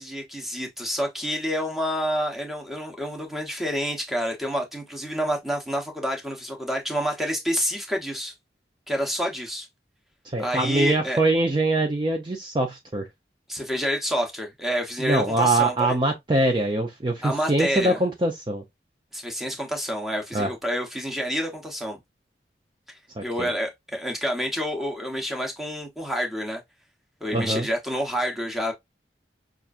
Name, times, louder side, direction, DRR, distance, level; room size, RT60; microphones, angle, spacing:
voice 1, 0.0-8.3 8.9-9.7 10.4-11.2 13.5-15.9 17.2-18.0 19.1-22.0 23.2-26.6 27.2-28.7, equal, ahead, 0.8 m, -28 dB
voice 2, 10.2-13.1 15.0-18.6 20.3-20.5 23.2-23.5 27.3-27.7, right 2 dB, 25° right, 0.5 m, -23 dB
5.7 x 2.5 x 2.4 m
head